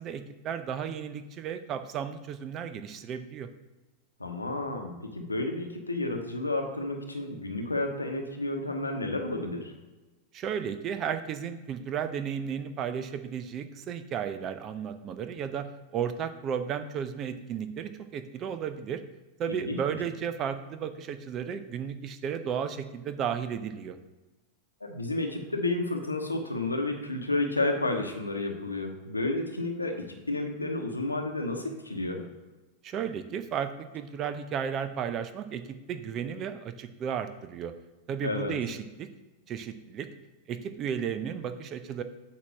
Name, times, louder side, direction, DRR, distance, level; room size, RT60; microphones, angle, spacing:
voice 1, 0.0-3.5 10.3-19.0 19.4-24.0 32.8-35.6 35.9-37.7 38.1-39.1 39.5-40.1 40.5-42.0, right 8 dB, 30° right, 10 dB, 0.5 m, -34 dB
voice 2, 4.2-9.7 19.5-19.8 24.8-32.3 38.2-38.5, left 2 dB, 80° left, 3 dB, 0.9 m, -31 dB
8.2 x 2.9 x 6.3 m, 1.1 s
figure-of-eight pair, 90°, 0 cm